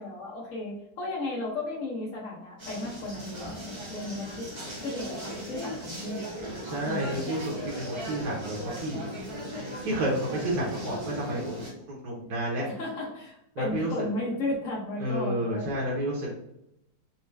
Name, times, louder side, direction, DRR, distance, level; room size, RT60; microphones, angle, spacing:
voice 1, 0.0-4.5 4.8-6.4 6.8-7.2 12.6-15.7, left 2 dB, 55° left, -3 dB, 1.4 m, -34 dB
sound 1, 2.6-11.7, equal, 25° right, 0.7 m, -37 dB
voice 2, 6.6-9.0 9.8-11.6 11.9-12.6 13.5-14.1 15.0-16.3, right 1 dB, 65° right, -5 dB, 1.4 m, -30 dB
4.3 x 2.2 x 3.3 m, 0.81 s
omnidirectional pair, 1.8 m